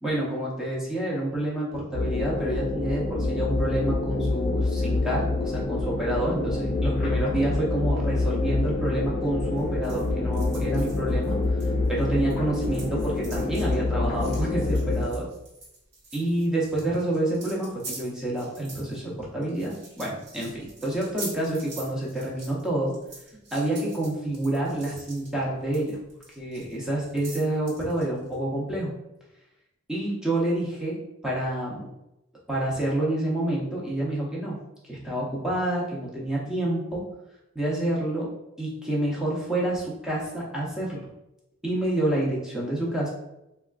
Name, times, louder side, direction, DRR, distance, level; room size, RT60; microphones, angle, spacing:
voice 1, 0.0-11.4 11.9-15.3 16.1-23.0 23.5-26.0 26.4-28.9 29.9-31.0 31.2-31.9 32.5-34.6 34.8-37.1 37.5-38.3 38.6-41.1 41.6-43.1, right 1 dB, 5° right, -5 dB, 0.6 m, -28 dB
sound 1, 1.9-15.0, left 2 dB, 40° left, 0.4 m, -26 dB
sound 2, 9.6-12.3 12.6-28.3, right 2 dB, 55° right, 0.9 m, -44 dB
3.5 x 2.2 x 2.3 m, 0.90 s
head